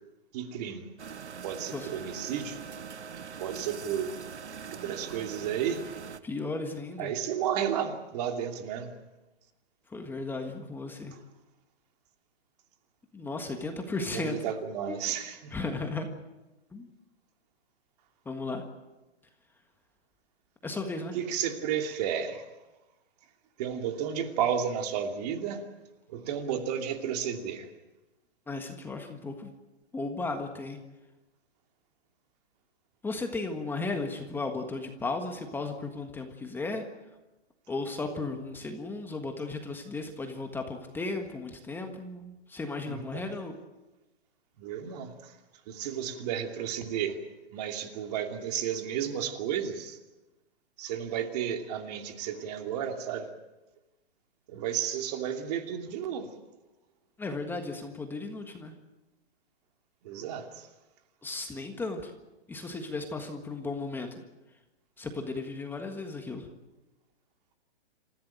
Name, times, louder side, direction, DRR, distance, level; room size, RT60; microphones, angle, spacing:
voice 1, 0.3-0.9 1.4-2.6 3.4-4.2 4.8-5.8 7.0-8.9 11.1-11.2 14.0-15.5 21.1-22.5 23.6-25.6 26.1-27.7 42.8-43.3 44.6-45.4 45.7-47.2 47.5-50.0 50.8-53.3 54.5-56.3 60.0-60.7, right 8 dB, 35° right, 5 dB, 2.8 m, -32 dB
sound 1, 1.0-6.2, right 6 dB, 85° right, 1.4 m, -42 dB
voice 2, 6.2-7.1 9.9-11.2 13.1-14.4 14.9-15.0 15.5-16.1 16.7-16.9 18.2-18.6 20.6-21.1 28.5-29.5 29.9-30.8 33.0-36.8 37.7-43.5 57.2-58.7 61.2-62.1 62.5-64.1 65.0-66.5, left 3 dB, 5° left, 4 dB, 1.6 m, -35 dB
28.0 x 15.5 x 9.1 m, 1.1 s
hypercardioid pair, 150°, 33 cm